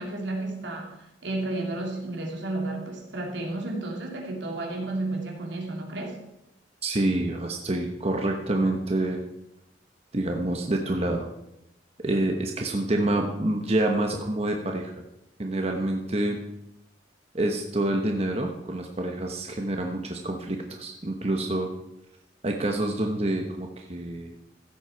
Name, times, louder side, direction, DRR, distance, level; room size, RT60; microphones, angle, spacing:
voice 1, 0.0-6.2, right 2 dB, 80° right, 0 dB, 2.8 m, -32 dB
voice 2, 6.8-9.2 10.1-11.3 12.0-15.0 15.4-16.4 17.3-21.7 22.4-24.3, right 1 dB, 35° right, 2 dB, 1.0 m, -27 dB
15.0 x 8.0 x 4.6 m, 0.85 s
head